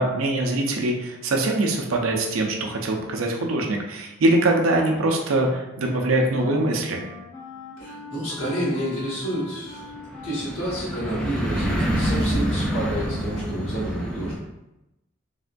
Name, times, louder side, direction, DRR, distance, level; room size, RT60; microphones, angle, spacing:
voice 1, 0.0-7.0, right 2 dB, 90° right, 1 dB, 0.5 m, -23 dB
Wind instrument woodwind instrument, 5.4-12.8, left 1 dB, 55° left, 1.5 m, -42 dB
voice 2, 7.8-9.9 10.2-14.4, right 1 dB, 80° left, -8 dB, 1.5 m, -29 dB
sound 1, 8.0-14.4, equal, 5° left, 0.4 m, -27 dB
3.4 x 2.2 x 2.5 m, 0.94 s
head